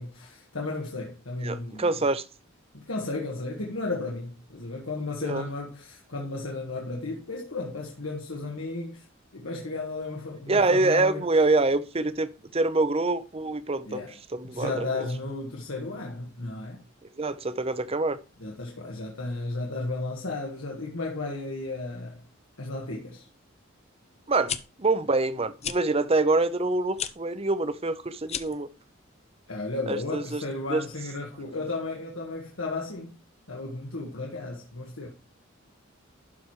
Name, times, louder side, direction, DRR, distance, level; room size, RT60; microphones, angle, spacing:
voice 1, 0.0-1.9 2.7-9.1 9.3-11.2 13.8-14.2 14.4-16.8 18.4-22.2 22.6-23.3 29.5-33.2 33.5-35.1, left 3 dB, 90° left, 1.7 m, -34 dB
voice 2, 1.4-2.2 5.2-5.4 10.5-14.0 14.3-15.1 17.2-18.2 24.3-28.7 29.9-30.4 30.7-30.8, right 3 dB, 30° right, 0.7 m, -25 dB
sound 1, 24.3-24.6 25.6-25.8 26.9-27.1 28.2-28.6, left 8 dB, 30° left, 0.6 m, -32 dB
12.0 x 4.7 x 4.8 m
head